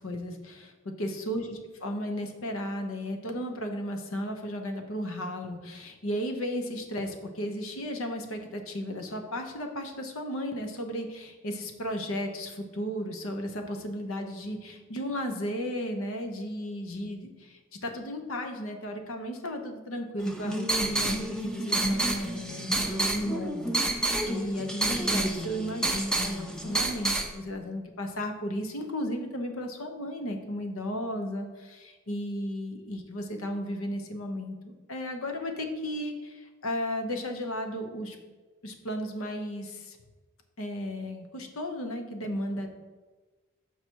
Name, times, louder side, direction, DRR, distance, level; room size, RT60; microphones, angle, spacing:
voice 1, 0.0-38.2 38.6-40.0 40.6-42.7, equal, 75° left, 5 dB, 0.9 m, -34 dB
sound 1, 20.2-27.3, right 2 dB, 5° left, 0.5 m, -29 dB
6.8 x 4.8 x 4.5 m, 1.3 s
head